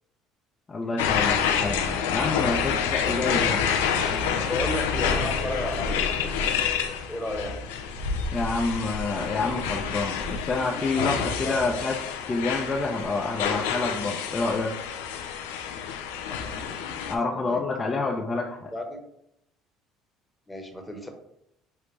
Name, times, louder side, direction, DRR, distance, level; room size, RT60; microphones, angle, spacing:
voice 1, 0.7-3.6 8.3-11.1 11.4-12.0 12.3-14.8 17.1-18.7, left 3 dB, 30° left, 0 dB, 0.6 m, -28 dB
sound 1, 1.0-17.1, left 7 dB, 90° left, 0.5 m, -28 dB
voice 2, 4.5-6.3 7.1-7.6 11.0-11.8 16.4-17.6 18.7-19.0 20.5-21.1, left 1 dB, 10° left, 3 dB, 1.1 m, -34 dB
6.7 x 2.3 x 3.2 m, 0.78 s
supercardioid pair, 75°, 0 cm